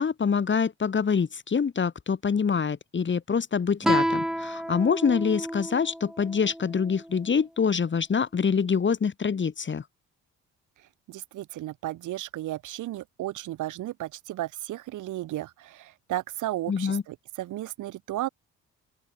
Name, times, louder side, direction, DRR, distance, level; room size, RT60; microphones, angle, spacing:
voice 1, 0.0-9.8 16.7-17.0, left 6 dB, 40° left, 3.2 m, -25 dB
Guitar, 3.8-7.1, equal, ahead, 1.3 m, -30 dB
voice 2, 11.1-18.3, right 15 dB, 85° right, 4.7 m, -34 dB
open air
cardioid pair, 90°, 30 cm